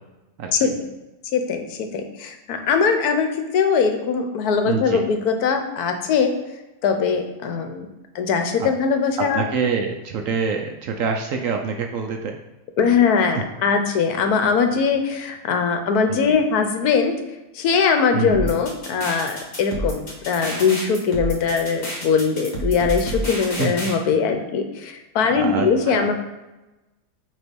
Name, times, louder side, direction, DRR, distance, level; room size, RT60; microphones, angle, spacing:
voice 1, 0.4-0.7 4.6-5.0 8.6-8.7 9.2-12.4 13.3-13.4 16.1-16.4 18.1-18.5 23.6-23.7 25.3-26.1, right 5 dB, 70° right, 3 dB, 0.9 m, -26 dB
voice 2, 1.3-6.3 6.8-7.9 8.1-9.4 12.8-17.1 17.5-26.1, left 5 dB, 75° left, 6 dB, 1.2 m, -21 dB
sound 1, 18.3-23.9, right 1 dB, 45° left, 1.5 m, -29 dB
6.5 x 3.0 x 5.2 m, 1.0 s
omnidirectional pair, 1.7 m